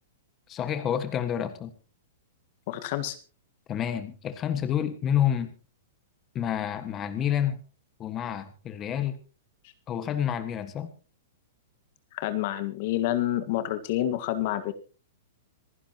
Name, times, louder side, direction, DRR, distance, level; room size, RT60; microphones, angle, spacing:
voice 1, 0.5-1.7 3.7-5.5 6.3-7.6 8.0-9.2 9.9-10.9, left 9 dB, 25° left, 10 dB, 1.6 m, -29 dB
voice 2, 2.7-3.2 12.1-14.7, left 13 dB, 50° left, 11 dB, 1.8 m, -28 dB
26.5 x 11.0 x 3.0 m, 0.36 s
hypercardioid pair, 145°, 0 cm